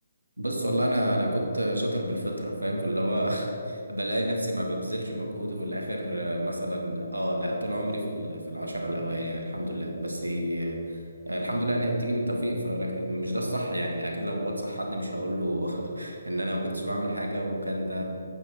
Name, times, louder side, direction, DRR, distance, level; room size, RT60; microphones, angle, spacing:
voice 1, 0.4-18.0, equal, 85° right, 1 dB, 1.4 m, -29 dB
8.7 x 6.2 x 4.4 m, 2.5 s
figure-of-eight pair, 140°, 0 cm